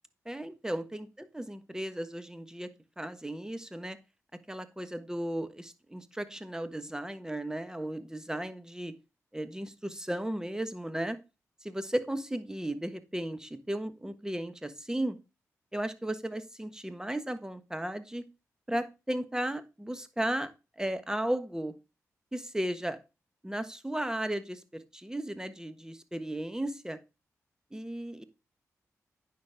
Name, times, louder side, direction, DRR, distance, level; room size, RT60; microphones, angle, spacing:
voice 1, 0.2-2.7 3.0-4.0 4.5-8.9 9.3-11.2 11.6-15.2 15.7-18.2 18.7-20.5 20.8-21.7 22.3-23.0 23.4-27.0 27.7-28.2, right 1 dB, 10° right, 11 dB, 1.4 m, -35 dB
9.5 x 6.2 x 3.6 m, 0.28 s
supercardioid pair, 40°, 6 cm